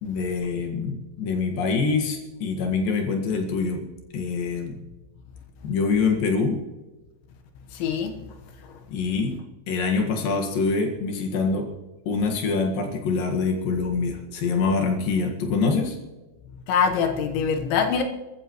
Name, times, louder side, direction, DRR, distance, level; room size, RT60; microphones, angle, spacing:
voice 1, 0.0-3.9 4.1-4.8 5.6-6.6 8.9-9.4 9.7-11.7 12.1-16.0, left 4 dB, 60° left, 3.1 m, -25 dB
voice 2, 7.7-8.2 16.7-18.0, left 6 dB, 85° left, 3.7 m, -23 dB
25.0 x 14.0 x 3.1 m
omnidirectional pair, 5.2 m